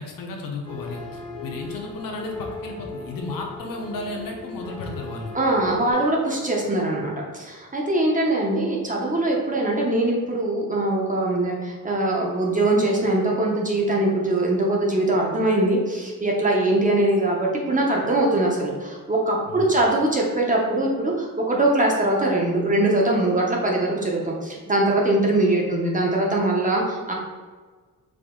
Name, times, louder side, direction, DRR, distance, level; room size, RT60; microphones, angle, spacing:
voice 1, 0.0-5.3 19.5-19.7, left 2 dB, 60° left, 1 dB, 0.9 m, -34 dB
sound 1, 0.6-5.9, left 3 dB, 15° left, 0.8 m, -37 dB
voice 2, 5.3-27.1, right 1 dB, 20° right, -2 dB, 0.6 m, -22 dB
4.9 x 2.6 x 3.6 m, 1.4 s
wide cardioid pair, 170°, 37 cm